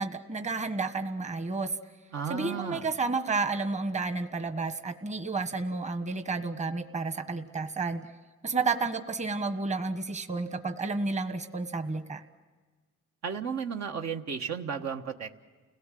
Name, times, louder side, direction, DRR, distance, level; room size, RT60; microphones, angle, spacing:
voice 1, 0.0-1.7 2.3-8.1 8.4-12.2, right 3 dB, 25° right, 8 dB, 1.4 m, -31 dB
voice 2, 2.1-2.9 13.2-15.3, right 6 dB, 60° right, 4 dB, 1.4 m, -34 dB
29.5 x 18.0 x 7.7 m, 1.4 s
cardioid pair, 90°, 30 cm